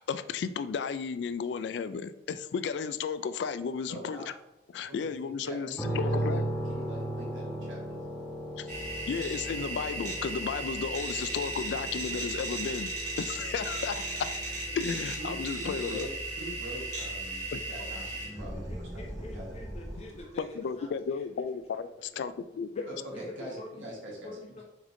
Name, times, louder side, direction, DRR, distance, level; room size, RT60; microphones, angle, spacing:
voice 1, 0.0-4.2 4.7-6.4 8.6-8.7 9.1-12.9 13.2-14.3 14.7-16.1 17.5-17.6 20.4-22.8, left 6 dB, 65° left, 12 dB, 0.3 m, -34 dB
voice 2, 3.9-4.3 4.9-6.4 6.7-8.0 15.2-17.4 17.7-19.4 22.9-24.3, right 1 dB, 90° right, -4 dB, 2.0 m, -43 dB
sound 1, 5.8-19.5, right 1 dB, 5° left, 1.2 m, -38 dB
sound 2, 8.7-18.3, right 2 dB, 40° right, 2.0 m, -36 dB
sound 3, 18.2-20.4, equal, 20° right, 1.3 m, -40 dB
voice 3, 18.5-21.4 21.7-22.3 22.7-24.6, left 1 dB, 35° left, -1 dB, 0.9 m, -47 dB
7.2 x 3.7 x 3.6 m, 0.93 s
head